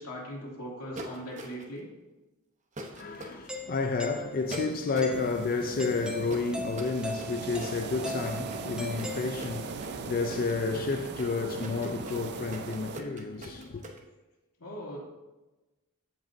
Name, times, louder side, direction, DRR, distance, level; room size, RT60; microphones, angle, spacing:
voice 1, 0.0-1.9 14.6-15.0, equal, 85° left, 2.5 m, -39 dB
sound 1, 0.9-1.8 2.8-3.3 4.5-5.2 6.3-14.0, right 1 dB, 35° right, 0.8 m, -42 dB
voice 2, 2.9-13.9, left 4 dB, 40° left, 0.4 m, -31 dB
Doorbell, 3.5-9.8, left 1 dB, 5° right, 0.6 m, -40 dB
sound 2, 5.1-13.0, right 5 dB, 50° right, 0.4 m, -40 dB
14.5 x 5.1 x 2.7 m
head